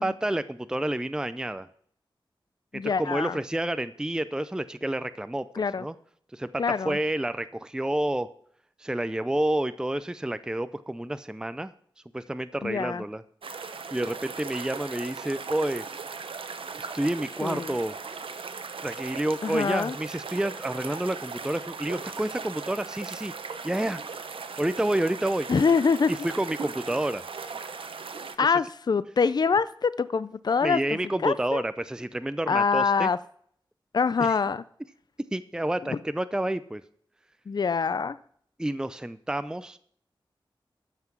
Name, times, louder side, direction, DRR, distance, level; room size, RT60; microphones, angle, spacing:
voice 1, 0.0-1.7 2.7-5.5 5.8-5.9 6.3-6.5 6.8-8.3 8.8-11.7 12.1-13.2 13.6-15.8 16.8-17.9 18.8-23.3 23.6-24.0 24.6-25.5 26.2-27.2 30.6-33.1 35.3-36.8 38.6-39.8, right 1 dB, 10° right, 13 dB, 0.4 m, -29 dB
voice 2, 2.7-3.4 5.5-5.9 6.6-7.0 12.6-13.0 17.4-17.7 19.4-20.0 25.5-26.1 28.4-30.8 31.2-31.6 32.5-33.2 33.9-34.6 37.5-38.2, left 5 dB, 50° left, 16 dB, 0.4 m, -25 dB
sound 1, 13.4-28.4, right 5 dB, 90° right, 0.8 m, -38 dB
13.5 x 5.8 x 6.0 m, 0.63 s
wide cardioid pair, 65°, 9 cm